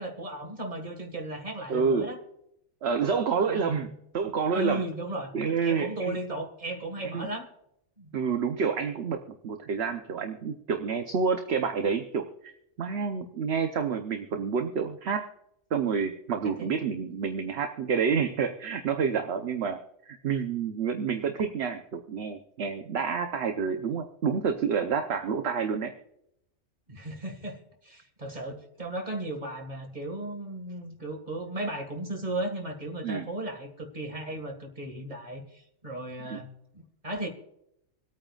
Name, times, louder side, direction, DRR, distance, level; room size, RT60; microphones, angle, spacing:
voice 1, 0.0-2.2 3.4-3.9 4.5-5.3 5.6-7.5 8.0-8.1 16.4-16.7 26.9-37.3, right 1 dB, 35° right, 4 dB, 1.9 m, -36 dB
voice 2, 1.7-2.1 2.8-3.9 4.1-4.8 5.3-6.2 7.1-7.3 8.1-12.5 12.8-15.2 15.7-19.8 20.1-25.9 33.0-33.2 36.2-36.4, right 6 dB, 55° right, 6 dB, 1.0 m, -28 dB
26.0 x 8.9 x 2.4 m, 0.75 s
omnidirectional pair, 1.4 m